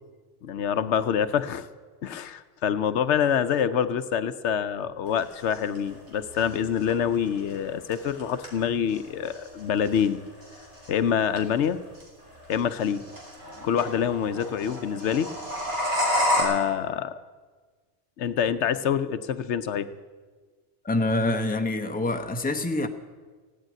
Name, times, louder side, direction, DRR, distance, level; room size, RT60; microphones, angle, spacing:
voice 1, 0.4-1.7 2.0-10.2 10.9-11.8 12.5-13.1 13.6-15.3 16.4-17.1 18.2-19.9, left 8 dB, 75° left, 12 dB, 1.0 m, -26 dB
sound 1, 5.1-16.4, left 1 dB, 75° right, 4.1 m, -32 dB
voice 2, 20.8-22.9, left 2 dB, 10° left, 5 dB, 0.8 m, -26 dB
16.0 x 9.0 x 9.5 m, 1.4 s
omnidirectional pair, 1.2 m